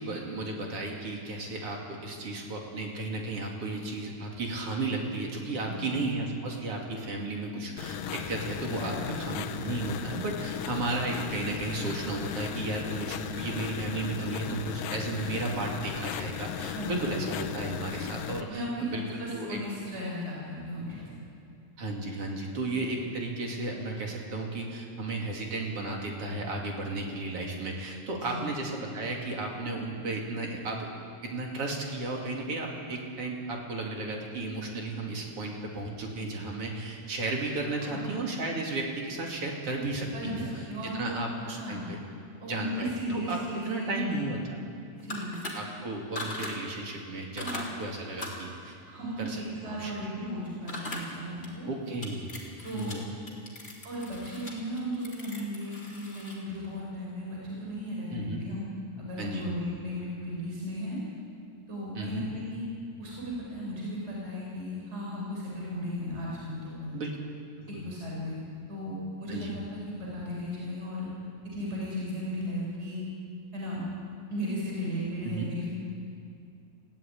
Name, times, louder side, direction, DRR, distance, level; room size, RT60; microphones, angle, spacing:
voice 1, 0.0-19.6 21.8-30.9 31.2-40.7 40.9-42.0 42.5-44.4 45.5-48.8 49.2-50.1 51.7-52.3 52.7-53.0 58.1-58.4 59.2-59.5 61.9-62.2 66.9-67.2 67.6-67.8 69.3-69.6 75.2-75.5, right 2 dB, 45° right, 0 dB, 3.3 m, -34 dB
sound 1, 7.8-18.4, left 9 dB, 80° left, 2.5 m, -36 dB
voice 2, 8.8-9.2 16.7-17.2 18.5-21.1 28.3-28.4 37.8-38.1 40.1-41.1 41.4-41.9 42.4-44.2 45.0-45.3 47.4-47.6 48.9-51.7 52.6-53.0 53.8-58.7 59.0-61.0 61.7-62.6 63.0-67.0 67.7-68.4 68.7-71.1 71.5-73.0 73.5-73.8 74.3-75.7, equal, 20° right, -5 dB, 5.5 m, -35 dB
sound 2, 45.0-45.5 46.2-46.5 47.4-47.6 48.2-48.5 50.7-51.0 51.4-51.5 52.0-52.9 53.3-56.4, left 2 dB, 20° left, 3.0 m, -39 dB
21.0 x 16.0 x 9.1 m, 2.5 s
omnidirectional pair, 3.9 m